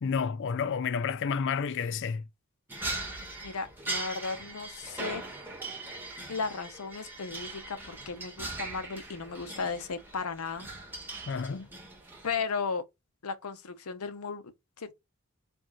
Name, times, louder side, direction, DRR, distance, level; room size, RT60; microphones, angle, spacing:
voice 1, 0.0-2.2 11.3-11.7, left 6 dB, 55° left, 0.4 m, -30 dB
sound 1, 2.7-12.4, right 2 dB, 10° right, 1.2 m, -40 dB
voice 2, 3.4-5.2 6.3-10.7 12.2-12.8 13.2-14.4 14.8-14.9, left 5 dB, 80° left, 0.8 m, -35 dB
4.5 x 2.5 x 3.7 m
head